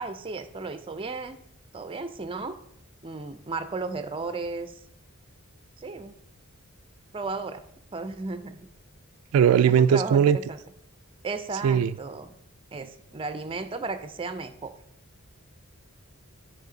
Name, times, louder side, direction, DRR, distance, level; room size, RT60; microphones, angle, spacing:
voice 1, 0.0-1.4 1.7-2.6 3.0-4.8 5.8-6.1 7.1-7.6 7.9-8.7 9.7-10.6 11.2-12.3 12.7-14.7, right 3 dB, 25° right, 0.5 m, -34 dB
voice 2, 9.3-10.4 11.6-11.9, right 8 dB, 80° right, 0.3 m, -19 dB
10.0 x 5.0 x 3.9 m
head